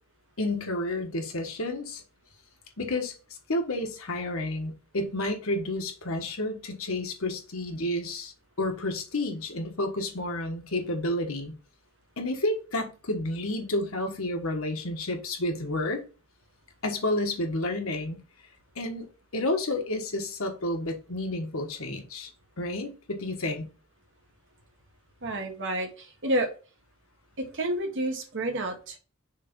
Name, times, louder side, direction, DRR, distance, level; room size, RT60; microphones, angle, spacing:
voice 1, 0.4-2.0 2.8-3.1 3.5-11.5 12.2-16.0 16.8-18.2 18.7-19.0 19.3-22.3 22.6-23.7, left 1 dB, 70° left, 1.4 m, -30 dB
voice 2, 25.2-26.5 27.4-29.0, right 1 dB, 60° right, 1.7 m, -30 dB
6.5 x 3.3 x 5.2 m
head